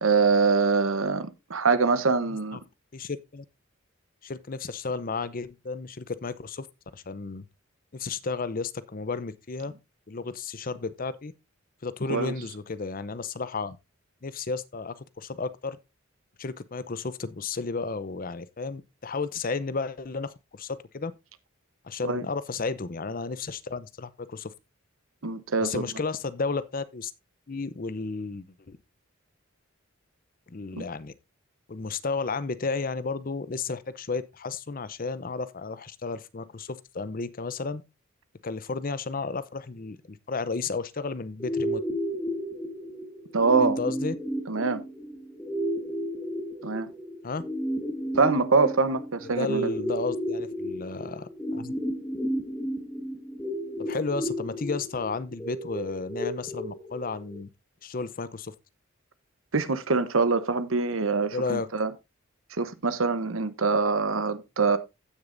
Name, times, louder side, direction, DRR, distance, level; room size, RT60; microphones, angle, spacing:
voice 1, 0.0-2.6 12.1-12.3 22.0-22.2 25.2-25.8 30.7-30.8 43.3-43.8 44.5-44.8 46.6-46.9 48.1-49.7 59.5-61.9 62.5-64.8, right 4 dB, 85° right, 1.0 m, -24 dB
voice 2, 2.9-3.4 4.2-6.7 6.9-7.5 7.9-9.7 10.1-11.3 11.8-13.8 14.2-15.8 16.4-21.1 21.8-24.5 25.6-27.1 27.5-28.8 30.5-31.1 31.7-37.8 38.4-41.8 43.6-44.1 47.2-47.5 49.2-51.7 53.8-57.5 57.8-58.5 61.3-61.7, left 4 dB, 45° left, 0.7 m, -33 dB
sound 1, 41.4-57.4, equal, 10° left, 1.6 m, -32 dB
15.5 x 6.6 x 2.6 m
head